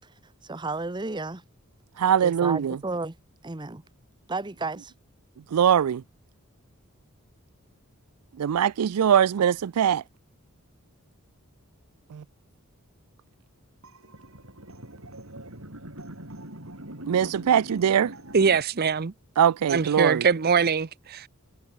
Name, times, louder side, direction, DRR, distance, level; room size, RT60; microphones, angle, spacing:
voice 1, 0.4-1.4 2.2-3.1 3.4-3.8 4.3-4.9, right 3 dB, 20° right, 0.9 m, -32 dB
voice 2, 2.0-2.8 5.5-6.0 8.4-10.0 12.1-12.2 17.1-18.1 19.4-20.2, right 8 dB, 90° right, 0.4 m, -22 dB
sound 1, 13.8-18.6, right 1 dB, 65° right, 7.0 m, -42 dB
voice 3, 18.3-19.1 19.7-21.3, right 5 dB, 45° right, 0.6 m, -23 dB
head